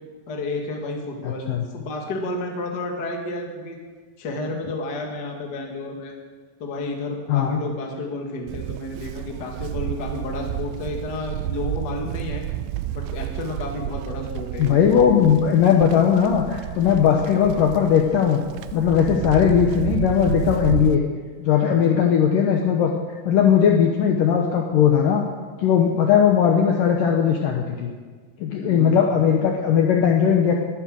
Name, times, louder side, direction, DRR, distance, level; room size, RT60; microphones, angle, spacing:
voice 1, 0.3-1.5 1.7-3.8 4.2-6.1 6.6-12.4 12.9-14.8 21.6-22.0 28.6-28.9, left 2 dB, 35° left, 1 dB, 1.7 m, -31 dB
voice 2, 1.2-1.7 7.3-7.6 14.6-18.4 18.7-21.0 21.4-22.9 23.3-25.2 25.6-27.9 28.4-30.5, left 8 dB, 70° left, 1 dB, 2.2 m, -18 dB
Livestock farm animals working animals, 8.5-21.0, right 14 dB, 85° right, 2.8 m, -31 dB
21.0 x 9.6 x 6.4 m, 1.5 s
omnidirectional pair, 4.9 m